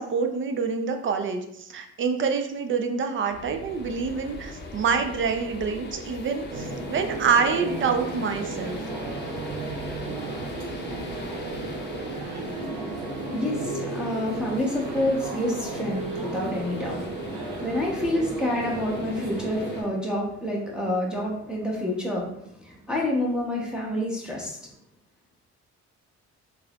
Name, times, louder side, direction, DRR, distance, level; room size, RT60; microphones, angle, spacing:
voice 1, 0.0-8.8, right 5 dB, 40° right, 6 dB, 0.5 m, -26 dB
sound 1, 3.3-19.8, left 3 dB, 35° left, 0.6 m, -42 dB
sound 2, 6.5-19.9, right 2 dB, 90° right, 0.8 m, -34 dB
voice 2, 12.1-12.7 13.3-24.7, left 1 dB, 5° right, -3 dB, 0.8 m, -28 dB
3.9 x 2.9 x 2.3 m, 0.76 s
cardioid pair, 90°, 30 cm